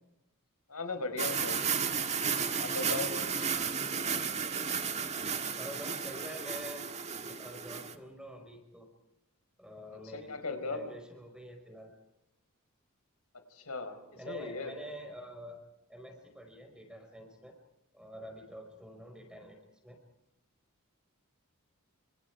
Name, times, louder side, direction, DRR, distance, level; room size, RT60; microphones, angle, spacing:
voice 1, 0.7-1.6 2.6-3.1 10.1-10.8 13.5-14.0 14.2-14.7, left 3 dB, 90° left, 8 dB, 4.6 m, -37 dB
sound 1, 1.2-7.9, right 6 dB, 30° right, 1.7 m, -33 dB
voice 2, 5.6-6.9 7.2-8.9 9.6-11.9 14.1-15.6 15.9-17.5 17.9-19.6 19.8-20.0, equal, 5° right, 3 dB, 5.1 m, -47 dB
28.0 x 27.0 x 4.8 m, 0.86 s
head